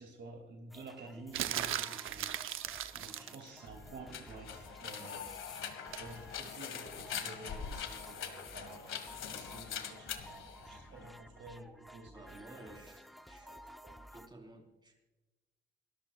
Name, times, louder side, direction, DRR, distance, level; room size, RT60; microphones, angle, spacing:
voice 1, 0.0-2.5 2.9-5.5 6.0-9.0 9.3-12.8 13.4-14.0, right 3 dB, 65° right, 3 dB, 2.7 m, -51 dB
sound 1, 0.7-14.3, equal, ahead, 0.8 m, -55 dB
sound 2, 1.3-3.4 5.9-6.1, right 11 dB, 90° right, 0.8 m, -37 dB
sound 3, 3.3-11.2, left 8 dB, 80° left, 1.7 m, -43 dB
voice 2, 3.9-4.3 8.5-8.6 10.8-11.4 12.0-13.6 14.1-14.9, right 1 dB, 20° right, 1 dB, 4.2 m, -56 dB
28.5 x 13.5 x 2.4 m, 1.1 s
cardioid pair, 110°, 20 cm